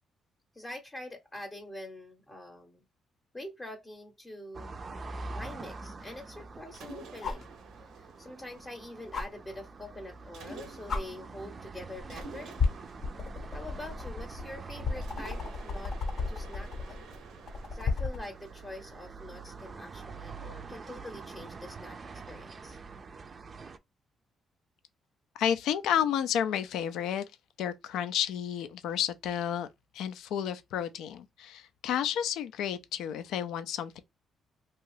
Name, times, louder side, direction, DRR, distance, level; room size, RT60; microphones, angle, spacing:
voice 1, 0.5-2.8 3.3-7.5 7.8-12.6 13.5-16.0 16.3-17.1 17.7-22.8, left 1 dB, 20° left, 0.7 m, -45 dB
sound 1, 4.5-23.8, right 4 dB, 40° right, 0.4 m, -46 dB
sound 2, 5.0-5.1 7.2-7.5 9.1-9.3 10.4-10.5 10.9-11.0 12.0-12.2 12.6-18.3 19.9-20.0, left 4 dB, 55° left, 0.7 m, -33 dB
Mechanisms, 6.7-9.2 10.3-11.2 12.1-14.4 15.0-19.2, right 3 dB, 85° right, 0.6 m, -50 dB
voice 2, 25.4-27.2 27.6-29.7 29.9-34.0, left 9 dB, 85° left, 0.4 m, -31 dB
2.9 x 2.3 x 3.1 m
cardioid pair, 90°, 0 cm